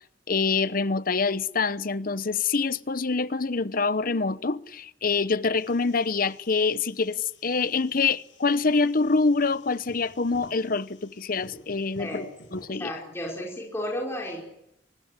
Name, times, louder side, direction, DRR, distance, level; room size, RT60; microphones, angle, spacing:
voice 1, 0.3-12.3 12.5-12.9, left 4 dB, 50° left, 0.9 m, -25 dB
sound 1, 5.6-12.7, left 2 dB, 80° left, 5.7 m, -52 dB
voice 2, 12.8-14.4, left 1 dB, 15° left, 5.2 m, -33 dB
24.5 x 20.0 x 9.8 m
head